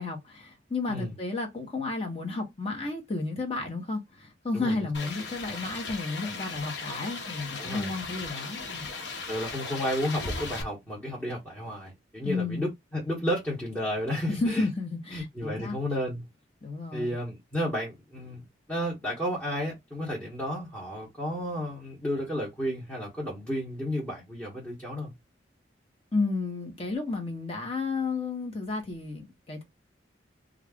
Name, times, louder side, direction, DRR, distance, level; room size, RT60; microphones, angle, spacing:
voice 1, 0.0-8.9 12.2-12.7 14.3-15.8 16.6-17.1 26.1-29.6, left 3 dB, 30° left, 0.9 m, -32 dB
sound 1, 4.9-10.6, left 3 dB, 70° left, 0.7 m, -37 dB
voice 2, 7.6-7.9 9.3-14.7 15.1-16.2 16.9-25.1, equal, 10° left, 1.0 m, -32 dB
2.4 x 2.3 x 3.5 m
head